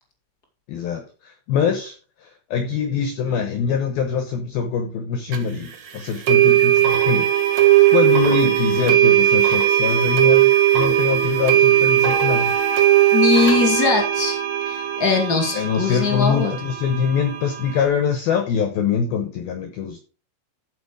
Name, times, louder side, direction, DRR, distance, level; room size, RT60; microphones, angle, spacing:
voice 1, 0.7-7.3 7.9-12.5 15.5-20.0, left 6 dB, 85° left, 2.1 m, -23 dB
sound 1, 5.3-5.4 6.3-17.8, right 12 dB, 75° right, 1.6 m, -18 dB
voice 2, 13.1-16.5, left 5 dB, 45° left, 1.2 m, -21 dB
14.0 x 4.8 x 5.0 m
omnidirectional pair, 5.9 m